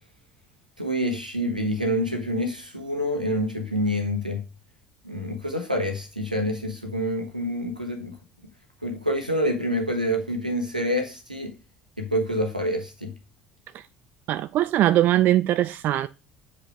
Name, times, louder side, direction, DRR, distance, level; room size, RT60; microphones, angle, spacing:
voice 1, 0.8-4.4 5.0-8.1 8.8-11.5 12.0-13.1, equal, 90° right, 1.1 m, -27 dB
voice 2, 14.3-16.1, right 13 dB, 45° right, 0.3 m, -21 dB
7.4 x 5.0 x 3.5 m
figure-of-eight pair, 60°, 4 cm